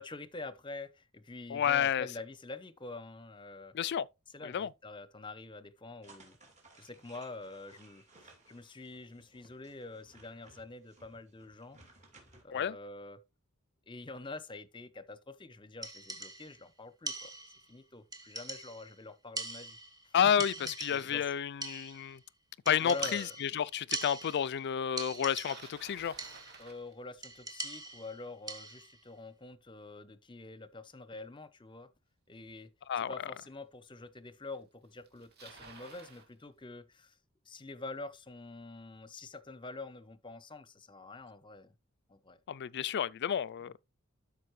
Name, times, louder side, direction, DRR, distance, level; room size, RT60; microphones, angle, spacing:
voice 1, 0.0-3.7 4.3-6.4 6.7-11.8 12.4-13.2 13.9-17.3 17.7-19.8 20.0-20.1 20.6-21.2 22.8-23.4 26.6-31.9 32.3-32.7 33.1-37.2 37.5-41.7 42.1-42.4, left 3 dB, 25° left, 0.7 m, -46 dB
voice 2, 1.5-2.1 3.7-4.1 4.4-4.7 12.5-12.7 20.1-22.2 22.7-26.1 32.9-33.1 42.5-43.8, left 8 dB, 55° left, 0.4 m, -30 dB
sound 1, 6.0-12.4, right 2 dB, 35° right, 2.7 m, -60 dB
sound 2, 15.8-16.6 17.1-17.7 18.1-18.9 19.4-20.1 20.4-21.3 21.6-22.2 22.7-24.6 25.0-25.8 26.2-26.7 27.2-29.0, right 3 dB, 20° right, 1.3 m, -42 dB
Bicycle, 25.1-27.4 32.5-32.6 33.4-33.5 34.5-34.6 34.8-36.3, right 4 dB, 50° right, 2.4 m, -53 dB
12.5 x 5.2 x 3.1 m
head